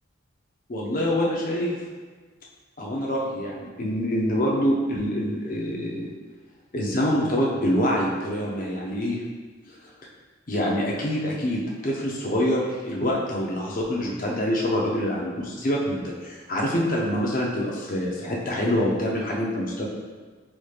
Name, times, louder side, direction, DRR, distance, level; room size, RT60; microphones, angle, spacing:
voice 1, 0.7-1.8 2.8-6.1 6.7-9.2 9.7-9.8 10.5-19.9, equal, 40° left, -3 dB, 0.6 m, -25 dB
3.2 x 3.1 x 2.3 m, 1.4 s
head